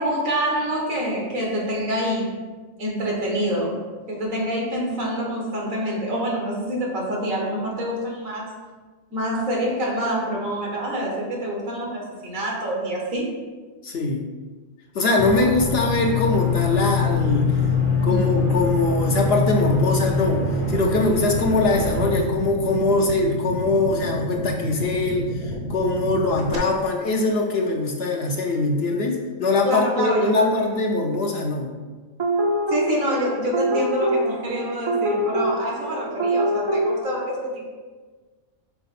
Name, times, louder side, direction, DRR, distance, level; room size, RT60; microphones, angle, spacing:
voice 1, 0.0-2.3 2.8-3.8 4.1-8.5 9.1-13.4 18.0-18.2 29.6-30.7 32.7-37.7, equal, 75° right, -2 dB, 1.9 m, -26 dB
voice 2, 13.8-14.2 14.9-17.6 18.0-31.7, left 3 dB, 55° left, 1 dB, 0.9 m, -22 dB
sound 1, 15.2-22.2, left 4 dB, 15° left, 0.7 m, -24 dB
sound 2, 16.6-26.6, equal, 55° right, 1.3 m, -30 dB
sound 3, 32.2-37.0, right 1 dB, 30° right, 0.5 m, -24 dB
5.8 x 4.5 x 4.2 m, 1.4 s
omnidirectional pair, 1.4 m